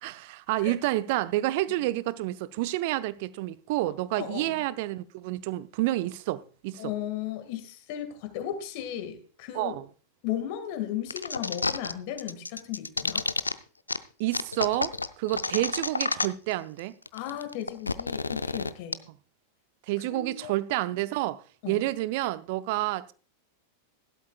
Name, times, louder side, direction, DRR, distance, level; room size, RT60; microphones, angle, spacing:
voice 1, 0.0-6.9 9.5-9.8 14.2-16.9 19.9-23.1, right 16 dB, 50° right, 0.6 m, -29 dB
voice 2, 4.2-4.6 6.8-9.8 10.2-13.2 17.1-19.0 20.1-20.5 21.6-21.8, left 11 dB, 45° left, 2.1 m, -35 dB
sound 1, 11.1-11.9 12.2-13.5 13.9-14.0 14.3-16.5 16.8-16.9 17.1-18.9, left 3 dB, 80° left, 0.5 m, -29 dB
15.5 x 12.0 x 2.4 m
figure-of-eight pair, 90°, 0 cm